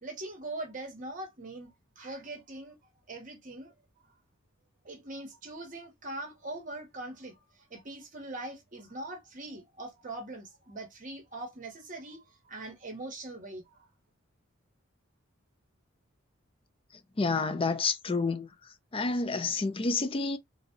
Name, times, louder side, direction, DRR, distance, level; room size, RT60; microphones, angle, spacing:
voice 1, 0.0-2.8 3.1-3.7 4.8-7.4 7.7-13.7, right 2 dB, 40° right, 0.9 m, -42 dB
voice 2, 17.2-18.5 18.9-20.4, left 4 dB, 25° left, 0.4 m, -29 dB
3.9 x 2.0 x 2.7 m
head